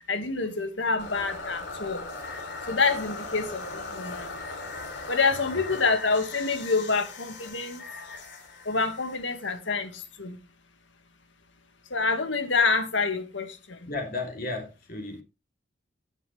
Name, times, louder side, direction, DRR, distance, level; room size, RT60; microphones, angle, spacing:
voice 1, 0.1-2.0 2.7-4.3 5.1-7.8 8.7-9.9 10.2-10.4 11.9-13.8, left 4 dB, 85° left, 2.0 m, -27 dB
sound 1, 1.0-10.0, left 3 dB, 65° left, 3.2 m, -39 dB
voice 2, 13.9-15.2, left 2 dB, 50° left, 3.3 m, -34 dB
17.0 x 7.1 x 3.4 m
head